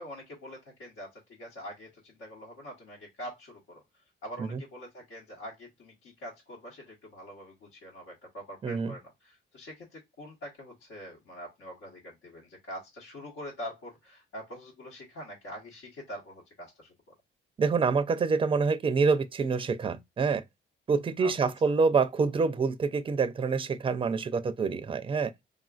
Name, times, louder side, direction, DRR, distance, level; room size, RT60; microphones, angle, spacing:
voice 1, 0.0-3.8 4.2-16.9 21.2-21.3, equal, 85° left, 1.1 m, -44 dB
voice 2, 8.6-8.9 17.6-20.4 20.9-25.3, right 5 dB, 25° right, 0.4 m, -26 dB
3.5 x 2.4 x 2.3 m
cardioid pair, 90°, 20 cm